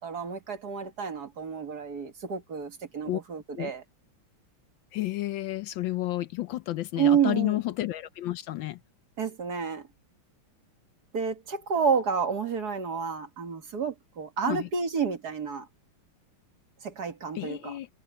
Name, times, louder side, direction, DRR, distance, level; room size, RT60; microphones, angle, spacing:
voice 1, 0.0-3.8 7.0-7.6 9.2-9.9 11.1-15.7 16.8-17.8, right 6 dB, 50° right, 2.1 m, -29 dB
voice 2, 4.9-8.8 14.5-14.7 17.3-17.9, left 16 dB, 75° left, 1.3 m, -31 dB
open air
omnidirectional pair, 2.3 m